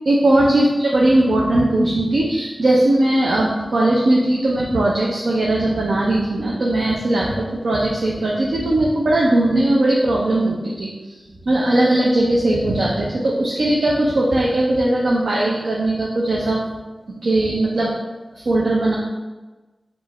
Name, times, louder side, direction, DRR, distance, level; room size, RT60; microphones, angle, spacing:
voice 1, 0.1-10.9 11.5-16.6 17.2-17.9 18.3-19.0, right 1 dB, 85° right, -3 dB, 0.5 m, -18 dB
4.7 x 2.4 x 4.2 m, 1.2 s
wide cardioid pair, 60°, 0 cm